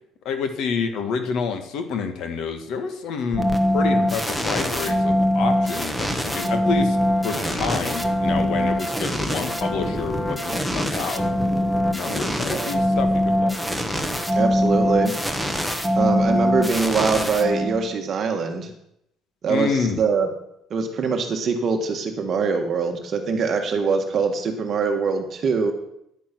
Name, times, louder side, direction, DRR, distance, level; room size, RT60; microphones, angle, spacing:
voice 1, 0.2-7.0 7.2-11.2 11.9-13.6 19.5-20.0, left 5 dB, 55° left, 7 dB, 1.6 m, -28 dB
sound 1, 3.3-18.0, equal, 5° left, 1.0 m, -23 dB
voice 2, 14.3-15.1 15.9-18.7 19.4-20.3 20.7-25.7, right 5 dB, 35° right, 5 dB, 1.6 m, -23 dB
10.5 x 9.1 x 6.1 m, 0.76 s
cardioid pair, 180°, 0 cm